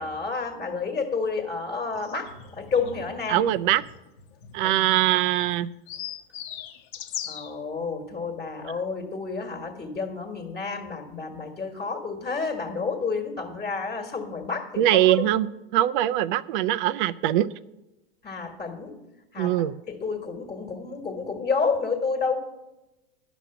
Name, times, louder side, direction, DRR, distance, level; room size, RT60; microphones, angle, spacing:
voice 1, 0.0-3.4 4.6-4.8 5.1-5.2 7.3-15.3 18.2-19.0 19.3-19.5 19.9-22.4, left 4 dB, 20° left, 2 dB, 1.5 m, -30 dB
sound 1, 1.9-7.5, left 10 dB, 55° left, 1.0 m, -40 dB
voice 2, 3.3-3.8 4.5-5.7 14.8-17.5 19.4-19.8, right 13 dB, 55° right, 15 dB, 0.5 m, -22 dB
11.0 x 6.1 x 7.0 m, 0.97 s
hypercardioid pair, 115°, 30 cm